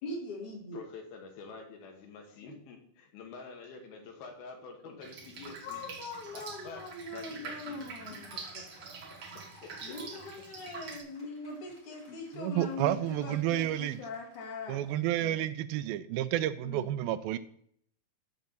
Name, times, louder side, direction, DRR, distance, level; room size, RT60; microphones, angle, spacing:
voice 1, 0.0-0.8 2.4-2.5 5.6-8.3 9.8-15.4 16.6-16.9, left 2 dB, 60° left, 0 dB, 3.3 m, -42 dB
voice 2, 0.7-5.9 6.3-6.8 7.1-7.9 8.6-8.7 9.6-10.0 12.1-12.2, left 4 dB, 90° left, 2 dB, 3.5 m, -47 dB
Drip, 5.0-11.0, right 5 dB, 50° right, 1.8 m, -45 dB
Cheering / Applause, 7.9-15.2, left 1 dB, 20° left, 1.7 m, -59 dB
voice 3, 12.4-14.0 14.7-17.4, right 13 dB, 85° right, 13 dB, 2.3 m, -30 dB
10.5 x 3.9 x 7.1 m, 0.66 s
omnidirectional pair, 4.2 m